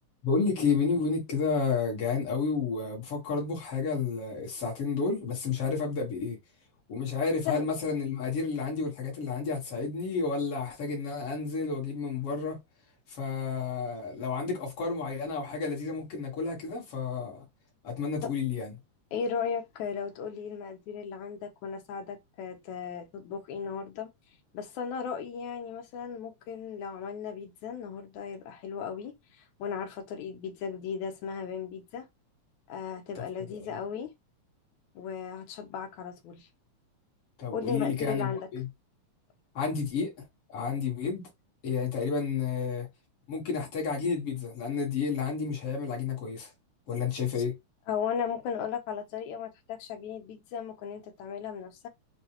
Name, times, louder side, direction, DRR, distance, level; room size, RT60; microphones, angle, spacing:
voice 1, 0.2-6.4 6.9-12.6 13.1-17.5 17.8-18.7 33.5-33.8 37.4-38.7 39.5-40.1 40.5-41.3 41.6-42.9 43.3-46.5 46.9-47.6, left 5 dB, 55° left, 2.3 m, -31 dB
voice 2, 19.1-24.1 24.5-29.2 29.6-32.1 32.7-34.1 35.0-36.5 37.5-38.5 47.9-51.9, left 7 dB, 75° left, 2.3 m, -36 dB
6.8 x 2.4 x 3.0 m
omnidirectional pair, 3.4 m